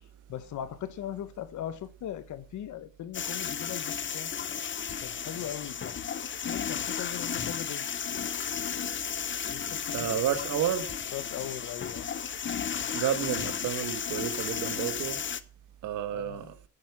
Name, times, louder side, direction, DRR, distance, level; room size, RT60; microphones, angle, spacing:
voice 1, 0.3-4.3 5.0-6.0 6.4-7.9 9.5-10.2 11.1-12.1 16.1-16.5, left 11 dB, 75° left, 1.3 m, -39 dB
sound 1, 3.1-15.4, left 7 dB, 40° left, 0.9 m, -34 dB
voice 2, 9.9-10.9 12.9-15.2 15.8-16.5, right 10 dB, 90° right, 1.6 m, -31 dB
10.5 x 8.5 x 6.0 m
cardioid pair, 90°, 30 cm